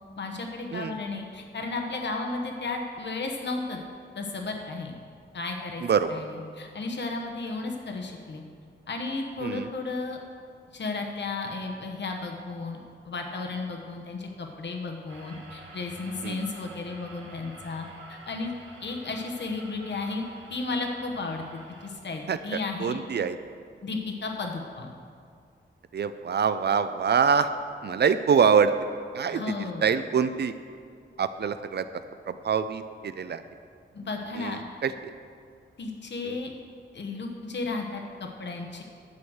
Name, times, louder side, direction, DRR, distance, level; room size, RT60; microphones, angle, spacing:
voice 1, 0.2-3.8 4.1-4.9 5.3-5.8 6.1-8.4 8.9-10.2 10.7-18.5 18.8-20.2 20.5-23.0 23.8-24.9 29.3-29.9 33.9-34.6 35.8-36.5 36.9-38.8, left 3 dB, 65° left, 2 dB, 1.1 m, -34 dB
sound 1, 15.1-21.9, right 2 dB, 85° right, 2.1 m, -48 dB
voice 2, 22.3-23.4 25.9-27.5 27.8-28.7 29.1-29.4 29.8-30.6 31.2-31.9 32.3-33.4 34.4-35.1 36.2-36.4, right 6 dB, 60° right, 11 dB, 0.5 m, -25 dB
11.5 x 6.3 x 7.9 m, 2.3 s
wide cardioid pair, 165°, 19 cm